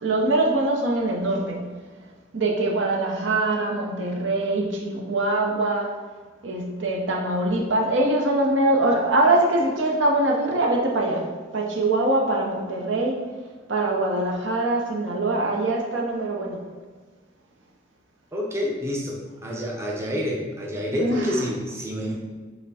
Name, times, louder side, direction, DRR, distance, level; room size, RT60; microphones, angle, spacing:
voice 1, 0.0-1.7 2.3-5.9 6.4-13.3 13.7-16.6 21.0-21.3, right 2 dB, 70° right, 0 dB, 0.7 m, -23 dB
voice 2, 18.3-22.2, left 1 dB, 15° right, -2 dB, 0.6 m, -28 dB
5.7 x 2.1 x 4.1 m, 1.4 s
head